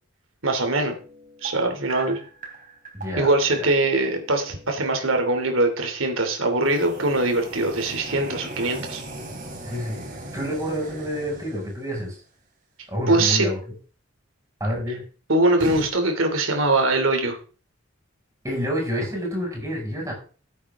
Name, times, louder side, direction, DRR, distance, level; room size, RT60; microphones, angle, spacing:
voice 1, 0.4-1.0 1.4-2.2 3.2-9.0 13.1-13.5 15.3-17.4, right 2 dB, 75° right, 5 dB, 2.8 m, -22 dB
sound 1, 0.6-5.3 6.6-12.1 15.5-15.9, right 2 dB, 40° right, 3.6 m, -39 dB
voice 2, 2.9-3.3 3.6-3.7 9.7-10.0 10.3-12.1 12.9-13.6 14.6-15.0 18.4-20.1, equal, 15° right, -2 dB, 6.1 m, -28 dB
14.5 x 8.4 x 3.6 m, 0.38 s
head